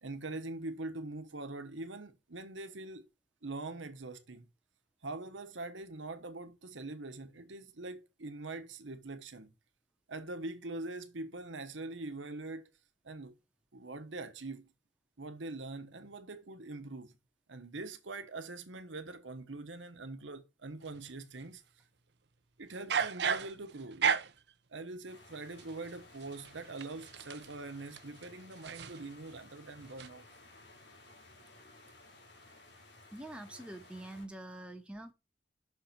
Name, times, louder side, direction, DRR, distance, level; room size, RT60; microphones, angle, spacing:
voice 1, 0.0-3.1 3.4-4.5 5.0-9.5 10.1-12.7 13.0-13.3 13.7-14.7 15.2-17.2 17.5-21.6 22.6-24.2 24.7-30.2, right 2 dB, 85° right, 1.1 m, -43 dB
sound 1, 20.9-21.5 22.7-24.5 25.6-29.4 29.7-30.1, right 6 dB, 65° right, 0.6 m, -35 dB
sound 2, 25.1-34.3, left 2 dB, 70° left, 2.7 m, -57 dB
voice 2, 33.1-35.1, right 1 dB, 5° right, 1.0 m, -45 dB
6.3 x 4.3 x 6.0 m
head